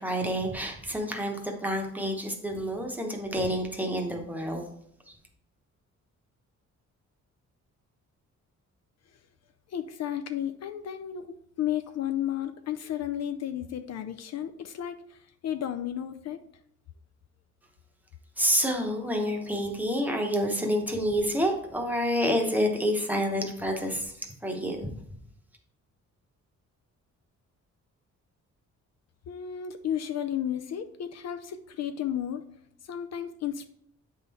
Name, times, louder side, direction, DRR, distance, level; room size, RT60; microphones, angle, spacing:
voice 1, 0.0-4.7 5.1-5.2 18.4-24.9, equal, 5° right, 1 dB, 0.9 m, -28 dB
voice 2, 9.7-16.4 29.3-32.4 32.8-33.7, left 10 dB, 60° left, 9 dB, 0.5 m, -33 dB
7.9 x 3.7 x 4.1 m, 0.71 s
wide cardioid pair, 155°, 30 cm